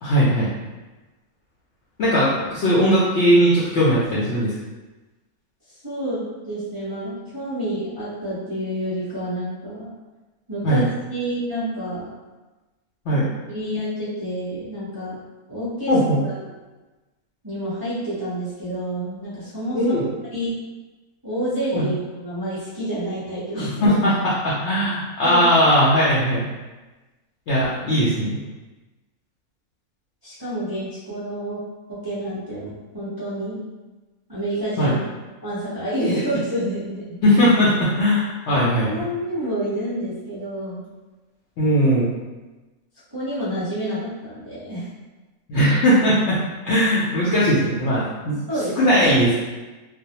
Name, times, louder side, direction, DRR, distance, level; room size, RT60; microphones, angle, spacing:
voice 1, 0.0-0.5 2.0-4.5 10.6-10.8 13.1-13.3 15.9-16.2 19.7-20.1 21.7-21.9 23.8-24.1 24.4-26.5 27.5-28.4 34.8-35.0 37.2-38.9 41.6-42.1 45.5-46.4 46.6-48.4 48.8-49.4, equal, 65° left, -8 dB, 0.7 m, -18 dB
voice 2, 5.8-9.9 10.5-12.0 13.1-15.1 15.5-15.9 16.2-16.5 17.4-19.8 20.3-20.5 21.2-24.0 25.2-25.4 30.2-31.6 31.9-33.6 34.3-35.0 35.4-37.4 38.5-40.8 43.1-44.9 48.5-49.1, equal, 20° right, -12 dB, 0.7 m, -28 dB
2.4 x 2.0 x 2.8 m, 1.2 s
omnidirectional pair, 1.6 m